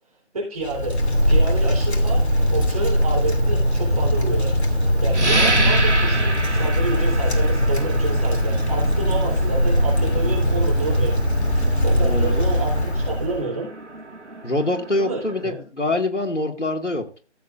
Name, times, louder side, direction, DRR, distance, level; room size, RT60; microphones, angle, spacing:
voice 1, 0.3-1.0 1.3-2.2 2.5-4.5 5.0-11.2 11.5-13.7 15.0-15.6, right 3 dB, 30° right, -2 dB, 3.7 m, -29 dB
Wind, 0.6-13.4, equal, 65° left, 2.8 m, -20 dB
sound 1, 5.1-15.4, right 2 dB, 75° right, 2.1 m, -30 dB
voice 2, 11.9-12.4 14.4-17.2, left 2 dB, 85° left, 4 dB, 2.2 m, -25 dB
15.0 x 7.6 x 2.6 m, 0.37 s
figure-of-eight pair, 155°, 35 cm